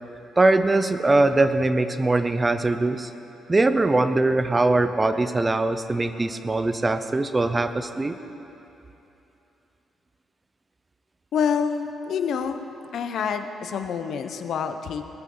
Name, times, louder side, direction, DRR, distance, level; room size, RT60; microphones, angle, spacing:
voice 1, 0.4-3.1 3.5-8.2, right 2 dB, 15° right, 10 dB, 0.6 m, -21 dB
voice 2, 11.3-15.1, left 6 dB, 65° left, 7 dB, 0.9 m, -27 dB
20.0 x 13.5 x 3.9 m, 2.9 s
cardioid pair, 135°, 0 cm